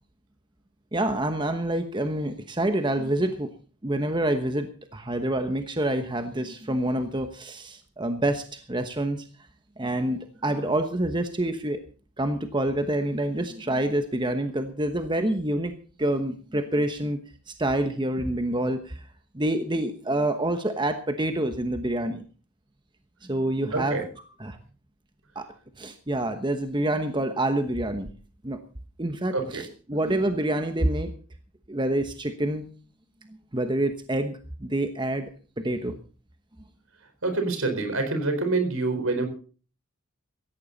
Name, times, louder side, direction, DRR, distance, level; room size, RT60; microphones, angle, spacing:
voice 1, 0.9-3.5 3.8-9.3 9.8-11.8 12.2-17.2 17.5-19.1 19.3-22.2 23.2-24.0 24.4-24.6 25.3-28.1 28.4-28.6 29.0-31.1 31.7-32.7 33.5-35.3 35.6-36.0, right 1 dB, 20° right, 8 dB, 1.1 m, -27 dB
voice 2, 23.7-24.0 29.3-29.6 37.2-39.3, right 3 dB, 70° right, 6 dB, 4.5 m, -26 dB
17.5 x 14.5 x 4.1 m, 0.39 s
head